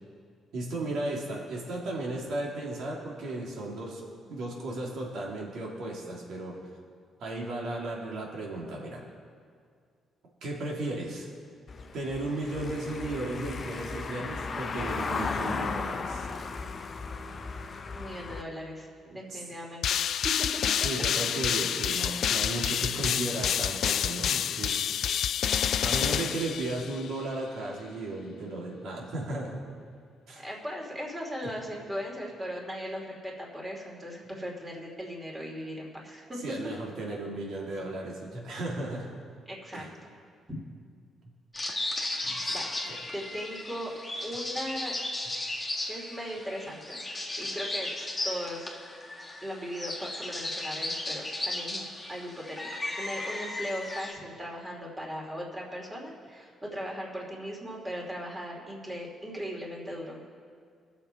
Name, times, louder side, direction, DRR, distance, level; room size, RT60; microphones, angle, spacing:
voice 1, 0.5-4.0 4.3-6.5 7.2-9.0 10.4-11.3 11.9-16.3 19.0-19.4 20.8-24.8 25.8-29.6 30.3-30.4 36.4-39.2 39.7-39.9 42.2-42.5, right 2 dB, 75° right, -2 dB, 2.7 m, -35 dB
Car passing by / Engine, 11.7-18.4, left 4 dB, 45° left, 0.7 m, -35 dB
voice 2, 17.9-20.4 30.4-36.4 39.5-39.9 40.5-40.6 42.5-42.7 43.1-43.9 44.2-45.0 45.9-47.0 47.4-47.9 48.2-48.8 49.4-52.6 53.0-60.2, equal, 15° right, -1 dB, 2.9 m, -38 dB
sound 1, 19.8-27.1, left 9 dB, 70° left, 0.3 m, -28 dB
sound 2, 41.5-54.1, left 2 dB, 15° left, 1.8 m, -35 dB
20.5 x 7.2 x 4.5 m, 2.1 s
cardioid pair, 90°, 0 cm